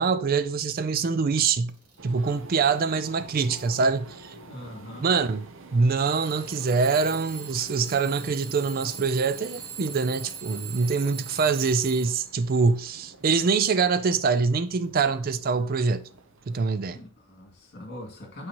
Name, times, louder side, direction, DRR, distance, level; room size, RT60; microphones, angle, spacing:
voice 1, 0.0-1.7 2.0-4.3 5.0-5.5 5.7-16.1 16.5-17.0, right 5 dB, 45° right, 0.4 m, -24 dB
Alarm / Clock, 1.0-1.1 1.7-2.1 2.7-3.1 4.0-4.1 6.0-12.4, right 5 dB, 85° right, 1.7 m, -41 dB
sound 1, 2.0-16.7, right 2 dB, 65° right, 0.8 m, -48 dB
voice 2, 4.5-5.1 16.9-18.5, left 1 dB, 50° left, 2.4 m, -41 dB
8.6 x 5.5 x 3.0 m
head